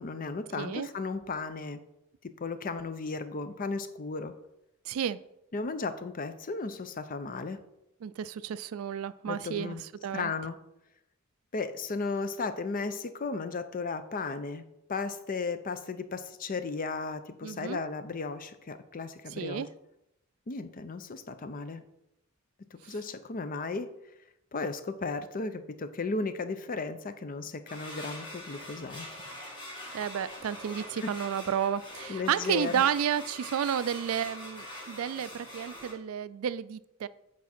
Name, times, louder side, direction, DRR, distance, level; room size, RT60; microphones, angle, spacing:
voice 1, 0.0-1.8 2.2-4.3 5.5-7.6 9.3-9.8 10.1-10.6 11.5-14.6 14.9-19.7 20.5-21.8 22.7-23.9 24.5-29.1 31.0-31.1 32.1-32.8, left 4 dB, 40° left, 11 dB, 0.5 m, -35 dB
voice 2, 0.6-0.9 4.8-5.2 8.0-10.3 17.4-17.8 19.3-19.7 22.8-22.9 29.9-37.1, right 8 dB, 70° right, 16 dB, 0.3 m, -32 dB
sound 1, 27.7-35.9, left 1 dB, 20° left, 1.8 m, -44 dB
8.3 x 4.8 x 4.3 m, 0.84 s
head